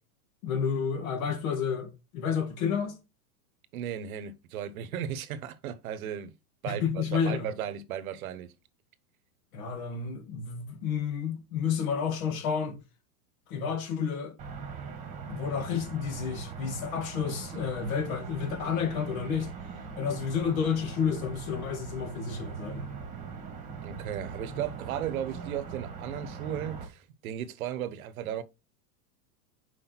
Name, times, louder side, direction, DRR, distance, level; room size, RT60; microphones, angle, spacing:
voice 1, 0.4-3.0 6.7-7.5 9.5-12.8 13.5-14.3 15.3-19.5 20.0-22.9, left 6 dB, 55° left, 2.1 m, -30 dB
voice 2, 3.7-6.3 6.6-8.5 23.8-28.4, right 10 dB, 60° right, 1.0 m, -35 dB
sound 1, 14.4-26.9, right 5 dB, 15° right, 1.5 m, -41 dB
5.9 x 4.9 x 4.3 m
supercardioid pair, 170°, 48 cm